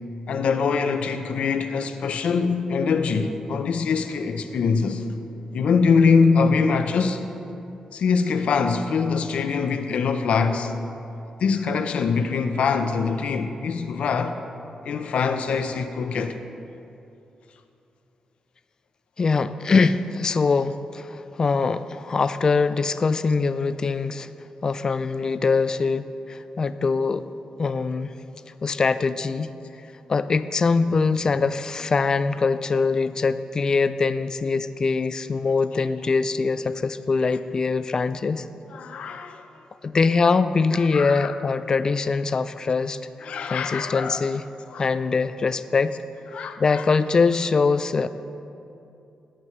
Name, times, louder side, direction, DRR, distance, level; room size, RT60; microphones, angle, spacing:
voice 1, 0.3-5.0 5.5-7.2 7.9-10.7 11.4-14.4 14.8-16.4 38.7-39.4 40.9-41.3 43.2-44.2 44.7-44.9 46.3-46.8, left 5 dB, 70° left, 0.6 m, -23 dB
voice 2, 19.2-24.3 24.6-27.2 27.6-28.1 28.6-29.5 30.1-38.5 39.8-43.0 43.5-44.4 44.8-46.0 46.6-48.1, left 4 dB, 35° left, 0.3 m, -23 dB
14.5 x 9.6 x 3.2 m
wide cardioid pair, 150°, 2 cm